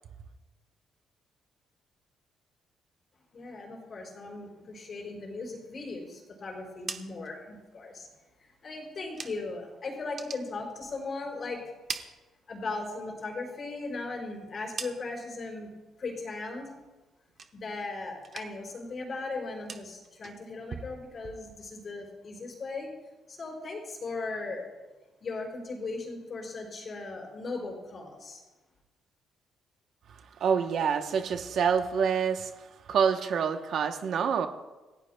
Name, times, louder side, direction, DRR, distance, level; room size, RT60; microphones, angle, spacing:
voice 1, 3.3-8.1 8.4-11.6 12.5-15.7 16.0-16.7 17.5-22.9 23.3-24.7 25.2-28.4, left 3 dB, 35° left, 5.1 m, -38 dB
sound 1, 6.6-9.7 10.0-11.3 11.6-12.9 13.3-15.4 15.8-16.2 16.6-17.9 18.2-18.8 19.0-21.9, right 5 dB, 35° right, 1.1 m, -45 dB
voice 2, 30.4-34.5, right 7 dB, 55° right, 0.9 m, -27 dB
28.5 x 17.0 x 2.3 m
cardioid pair, 160°, 0 cm